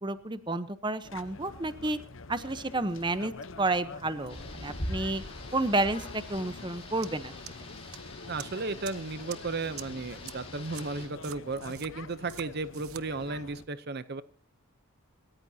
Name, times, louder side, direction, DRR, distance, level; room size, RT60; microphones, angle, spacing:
voice 1, 0.0-2.0 2.3-5.2 5.5-7.3, right 2 dB, 20° right, 12 dB, 0.9 m, -31 dB
sound 1, 1.0-13.6, left 3 dB, 60° left, 0.9 m, -46 dB
Rain, 4.3-11.1, left 1 dB, 25° left, 5.1 m, -43 dB
sound 2, 7.0-7.1 7.5-8.0 8.4-8.5 8.8-8.9 9.3-9.4 9.8-9.9 10.3-10.4 10.7-10.8 11.2-11.9 12.3-12.4 12.7-13.0, right 12 dB, 75° right, 1.0 m, -43 dB
voice 2, 8.3-14.2, right 3 dB, 45° right, 14 dB, 0.7 m, -35 dB
27.5 x 14.0 x 2.8 m, 0.41 s
head